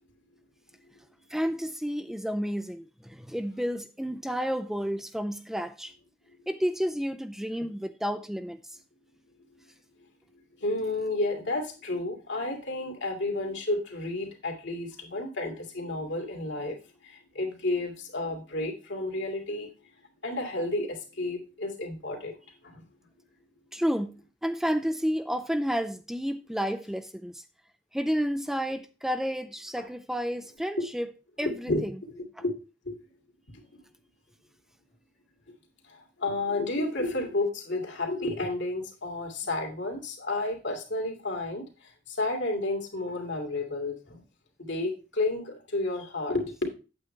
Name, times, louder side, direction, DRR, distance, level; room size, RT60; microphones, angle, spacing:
voice 1, 1.3-5.9 6.5-8.6 23.7-24.1 24.4-27.4 27.9-31.1 31.4-31.7, equal, ahead, 0.4 m, -31 dB
voice 2, 10.6-19.7 20.2-22.4 22.6-22.8 29.8-29.9 31.4-32.5 32.8-33.0 33.5-33.6 35.9-44.2 44.6-46.7, left 2 dB, 75° left, 2.4 m, -31 dB
8.7 x 8.1 x 3.3 m
head